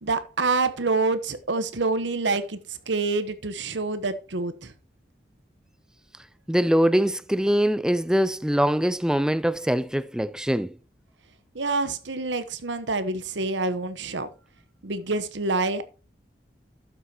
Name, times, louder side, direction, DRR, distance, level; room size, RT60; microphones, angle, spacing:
voice 1, 0.0-4.7 11.5-14.3 14.8-15.8, right 3 dB, 80° right, 1.0 m, -27 dB
voice 2, 6.5-10.7, equal, 5° right, 0.4 m, -23 dB
12.5 x 8.0 x 2.8 m
head